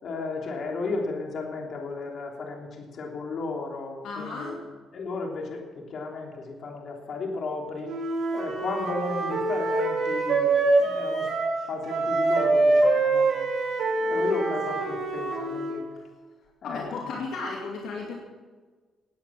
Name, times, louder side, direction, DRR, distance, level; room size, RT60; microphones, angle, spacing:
voice 1, 0.0-4.6 4.9-8.0 8.3-11.3 11.7-13.5 14.1-15.8 16.6-17.0, left 3 dB, 60° left, 1 dB, 3.3 m, -34 dB
voice 2, 4.0-4.6 13.8-14.2 16.6-18.1, left 4 dB, 80° left, -1 dB, 2.4 m, -35 dB
Wind instrument woodwind instrument, 7.8-11.6 11.8-15.8, right 2 dB, 65° right, 4.4 m, -25 dB
18.0 x 9.2 x 6.0 m, 1.4 s
cardioid pair, 90°, 0 cm